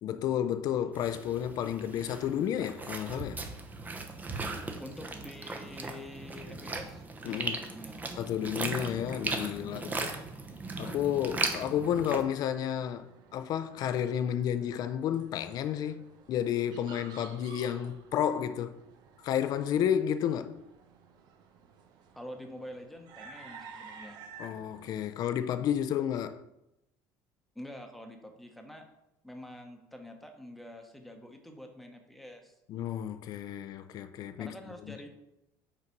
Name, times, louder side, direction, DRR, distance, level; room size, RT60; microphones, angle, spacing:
voice 1, 0.0-3.4 7.2-7.6 8.2-9.9 10.8-18.8 19.2-20.6 24.4-26.4 32.7-34.5 34.9-35.0, left 9 dB, 60° left, 0.5 m, -31 dB
sound 1, 0.9-12.2, right 3 dB, 20° right, 0.8 m, -38 dB
voice 2, 4.8-8.0 9.5-10.1 22.1-24.2 27.5-28.9 29.2-32.5 34.4-35.1, left 1 dB, ahead, 1.0 m, -47 dB
sound 2, 12.1-25.1, right 5 dB, 65° right, 0.8 m, -53 dB
5.8 x 4.0 x 4.6 m
supercardioid pair, 105°, 8 cm